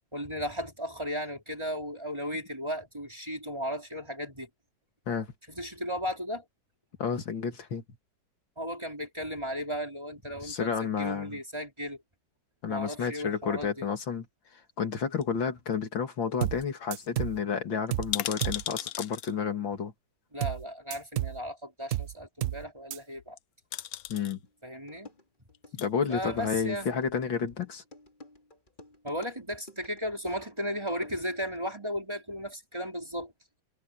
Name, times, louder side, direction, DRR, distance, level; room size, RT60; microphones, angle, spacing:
voice 1, 0.1-4.5 5.5-6.4 8.6-12.0 12.7-13.9 20.3-23.4 24.6-25.1 26.1-26.9 29.0-33.3, equal, 15° right, 4.4 m, -35 dB
voice 2, 7.0-7.8 10.4-11.4 12.6-14.3 14.8-19.9 24.1-24.4 25.7-27.8, left 6 dB, 80° left, 3.0 m, -31 dB
sound 1, 15.2-16.0 16.3-16.4 16.6-16.8 17.1-17.2 17.9-19.3 20.5-20.6 23.2-23.4 23.7-24.4 25.5-25.9 26.5-27.2 27.5-27.6, left 12 dB, 65° left, 0.9 m, -37 dB
sound 2, 16.4-16.6 16.9-17.4 17.9-18.1 18.4-18.6 20.4-20.6 20.9-21.4 21.9-22.1 22.4-22.6 22.9-23.0, right 14 dB, 80° right, 0.7 m, -31 dB
sound 3, 24.5-24.6 24.9-31.6, left 2 dB, 25° left, 3.9 m, -52 dB
omnidirectional pair, 2.0 m